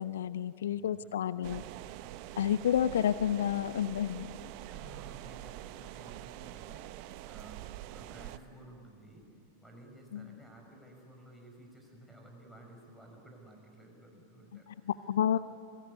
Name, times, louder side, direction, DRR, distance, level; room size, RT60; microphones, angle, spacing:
voice 1, 0.0-1.6 2.4-4.4 10.1-10.4 14.7-15.4, left 9 dB, 60° left, 17 dB, 0.5 m, -30 dB
voice 2, 0.7-1.0 2.8-3.1 4.7-15.4, right 1 dB, ahead, 2 dB, 5.7 m, -54 dB
sound 1, 1.4-8.4, right 14 dB, 45° right, 0.8 m, -45 dB
26.0 x 19.0 x 9.2 m, 2.5 s
figure-of-eight pair, 90°, 0 cm